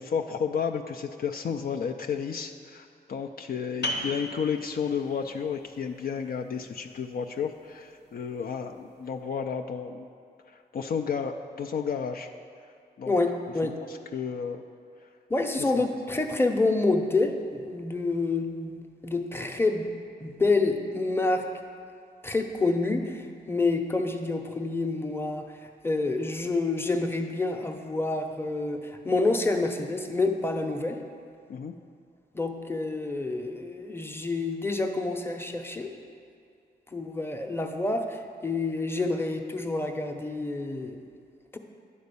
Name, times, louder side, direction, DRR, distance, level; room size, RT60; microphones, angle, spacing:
voice 1, 0.0-10.1 10.5-12.3 13.0-13.1 13.9-14.6 15.6-15.8 31.5-31.7, left 6 dB, 60° left, 3 dB, 0.4 m, -32 dB
sound 1, 3.8-9.2, equal, 80° left, 1.0 m, -39 dB
voice 2, 13.1-13.8 15.3-19.9 20.2-21.5 22.2-31.0 32.3-35.9 36.9-41.0 41.5-41.6, left 3 dB, 15° left, 4 dB, 0.7 m, -28 dB
9.4 x 4.2 x 6.8 m, 2.3 s
cardioid pair, 70°, 17 cm